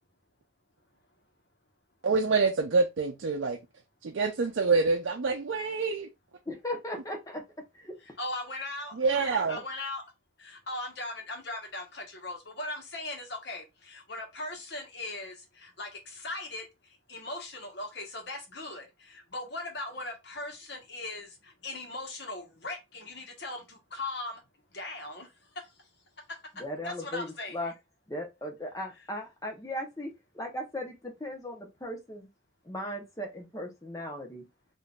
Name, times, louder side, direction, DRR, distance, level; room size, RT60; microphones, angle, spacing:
voice 1, 2.0-3.6 4.0-6.1 8.9-9.6, right 4 dB, 75° right, 0.5 m, -26 dB
voice 2, 6.5-7.4 7.7-8.0 26.5-27.7 28.1-32.3 32.6-34.5, left 1 dB, 15° left, 0.8 m, -37 dB
voice 3, 8.2-9.0 9.5-10.0 10.4-16.7 17.1-24.4 24.7-25.3 25.5-25.7 26.8-27.7, left 2 dB, 60° left, 1.1 m, -39 dB
3.7 x 2.6 x 2.3 m
head